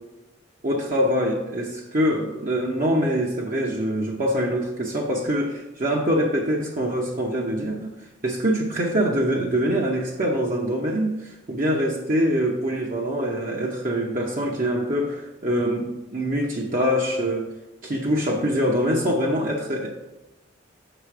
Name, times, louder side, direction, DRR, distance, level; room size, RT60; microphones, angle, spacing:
voice 1, 0.6-7.9 8.2-17.5 17.8-19.9, equal, 40° right, -1 dB, 0.7 m, -24 dB
6.7 x 5.0 x 4.8 m, 1.0 s
head